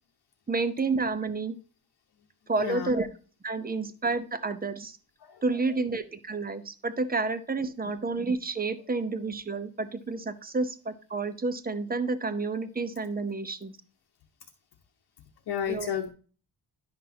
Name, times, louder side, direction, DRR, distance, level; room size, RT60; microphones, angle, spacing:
voice 1, 0.5-1.6 2.5-3.1 3.4-5.0 5.4-13.8 15.7-15.9, right 3 dB, 20° right, 12 dB, 0.6 m, -30 dB
voice 2, 2.6-2.9 5.2-5.4 15.5-16.1, left 8 dB, 65° left, 1 dB, 1.0 m, -32 dB
10.5 x 6.0 x 2.7 m, 0.38 s
wide cardioid pair, 150°, 41 cm